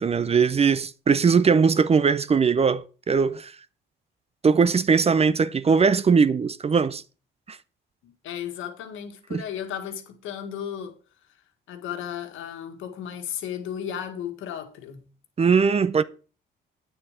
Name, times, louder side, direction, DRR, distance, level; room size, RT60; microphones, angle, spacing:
voice 1, 0.0-3.5 4.4-7.0 7.5-7.6 9.3-9.4 15.4-16.0, right 5 dB, 30° right, 0.6 m, -20 dB
voice 2, 8.0-11.0 11.7-15.0, left 9 dB, 85° left, 1.7 m, -34 dB
9.0 x 6.9 x 5.0 m
cardioid pair, 90°, 20 cm